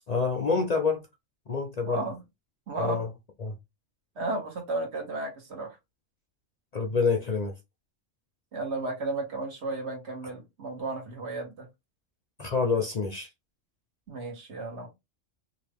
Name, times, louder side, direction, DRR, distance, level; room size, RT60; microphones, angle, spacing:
voice 1, 0.1-1.1 1.5-2.0 2.8-3.1 3.4-3.5 6.7-7.5 12.4-13.3, left 4 dB, 50° left, 0.5 m, -27 dB
voice 2, 1.8-2.2 2.7-3.0 4.2-5.8 8.5-11.7 14.1-14.9, right 2 dB, 60° right, 1.4 m, -33 dB
3.1 x 2.5 x 3.4 m
omnidirectional pair, 1.3 m